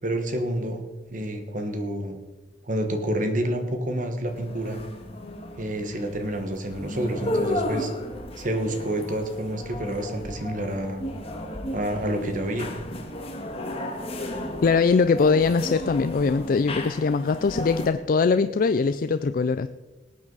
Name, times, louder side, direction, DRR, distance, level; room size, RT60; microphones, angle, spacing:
voice 1, 0.0-0.8 1.1-2.2 2.6-4.8 5.6-7.9 8.4-11.0 11.7-12.7, right 1 dB, 45° right, 6 dB, 1.4 m, -28 dB
sound 1, 4.3-17.9, left 1 dB, 35° left, 1.7 m, -34 dB
voice 2, 14.6-19.7, left 4 dB, 50° left, 11 dB, 0.4 m, -22 dB
19.5 x 8.6 x 4.0 m, 1.2 s
head